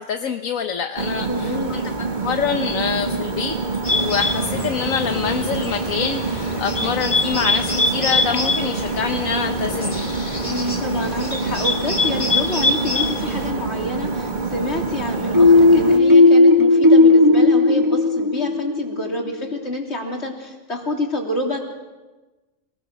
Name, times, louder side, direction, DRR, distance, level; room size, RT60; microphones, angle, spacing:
voice 1, 0.0-1.8 2.2-3.6 3.9-10.1, left 6 dB, 75° left, 6 dB, 1.5 m, -25 dB
sound 1, 1.0-16.0, right 3 dB, 35° right, 1.5 m, -26 dB
voice 2, 1.1-1.8 10.4-21.6, left 1 dB, 50° left, 2 dB, 3.5 m, -28 dB
Bird, 3.8-13.5, left 2 dB, 25° left, 1.6 m, -25 dB
sound 2, 15.3-19.0, left 2 dB, 15° right, 1.2 m, -13 dB
26.5 x 20.0 x 6.4 m, 1.2 s
omnidirectional pair, 1.4 m